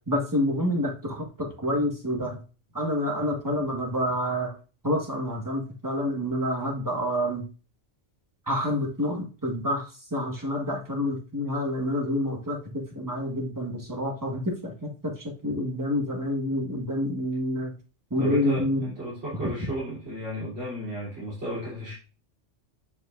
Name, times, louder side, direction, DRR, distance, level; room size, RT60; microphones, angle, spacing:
voice 1, 0.1-2.4 2.7-4.5 4.8-7.5 8.5-9.8 10.1-17.7 18.1-18.9, left 1 dB, 15° right, 0 dB, 1.5 m, -28 dB
voice 2, 18.2-21.9, right 1 dB, 80° right, -8 dB, 3.8 m, -33 dB
9.5 x 4.7 x 2.5 m, 0.35 s
omnidirectional pair, 1.2 m